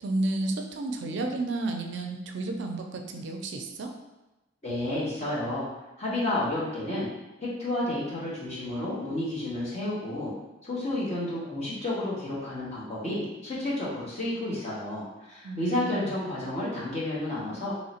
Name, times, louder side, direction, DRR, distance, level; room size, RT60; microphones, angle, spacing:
voice 1, 0.0-3.9 15.4-16.1, right 2 dB, 65° right, 3 dB, 0.4 m, -32 dB
voice 2, 4.6-5.7 6.0-7.1 7.4-10.3 10.6-17.7, left 1 dB, 35° left, -7 dB, 1.2 m, -31 dB
3.1 x 2.8 x 4.2 m, 1.0 s
head